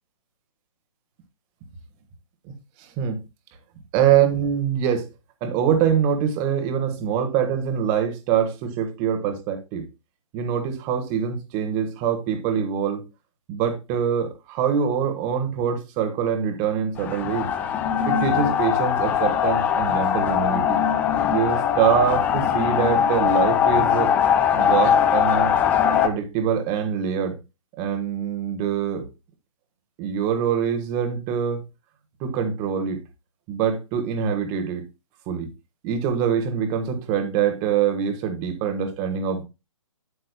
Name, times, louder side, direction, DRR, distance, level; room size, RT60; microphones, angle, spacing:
voice 1, 2.8-3.2 3.9-5.1 5.4-9.9 10.3-13.0 13.5-17.5 18.0-20.8 21.3-24.1 24.5-25.5 26.0-27.4 27.8-29.1 30.0-31.6 32.2-33.0 33.5-34.9 35.3-35.5 35.8-39.4, right 8 dB, 25° right, 1.5 m, -24 dB
sound 1, 17.0-26.1, left 8 dB, 10° left, 0.4 m, -21 dB
9.5 x 8.2 x 2.2 m
hypercardioid pair, 140°, 17 cm